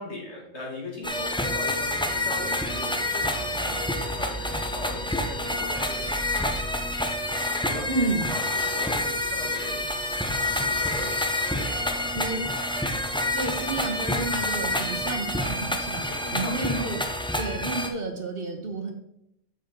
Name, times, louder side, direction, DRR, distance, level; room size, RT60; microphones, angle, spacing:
voice 1, 0.0-6.5 7.4-12.9 16.1-17.0, left 1 dB, 60° left, -2 dB, 2.6 m, -40 dB
sound 1, 1.0-17.9, left 1 dB, 10° left, 0.3 m, -28 dB
voice 2, 7.9-8.3 12.1-12.4 13.3-16.1 16.3-17.0 17.4-18.9, right 3 dB, 50° right, 5 dB, 1.1 m, -30 dB
7.3 x 7.0 x 3.7 m, 0.77 s
omnidirectional pair, 1.3 m